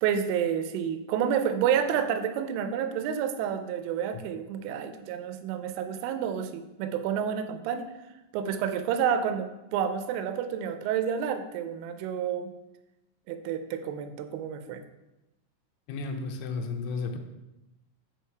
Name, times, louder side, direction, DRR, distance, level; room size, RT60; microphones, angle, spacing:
voice 1, 0.0-7.9 8.3-12.5 13.3-14.8, right 8 dB, 85° right, 9 dB, 2.9 m, -29 dB
voice 2, 15.9-17.2, left 4 dB, 80° left, 5 dB, 2.8 m, -33 dB
6.9 x 4.6 x 4.5 m, 0.99 s
omnidirectional pair, 5.9 m